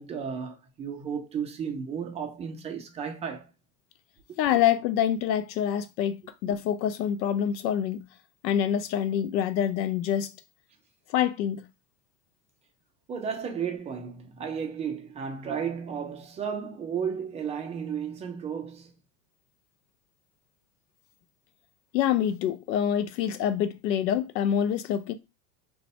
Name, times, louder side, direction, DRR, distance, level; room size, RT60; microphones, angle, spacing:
voice 1, 0.0-3.5 13.1-18.9, right 7 dB, 15° right, 0.3 m, -33 dB
voice 2, 4.4-8.1 8.4-10.3 11.1-11.7 21.9-25.1, left 9 dB, 85° left, 0.6 m, -26 dB
2.5 x 2.3 x 4.0 m
hypercardioid pair, 105°, 50 cm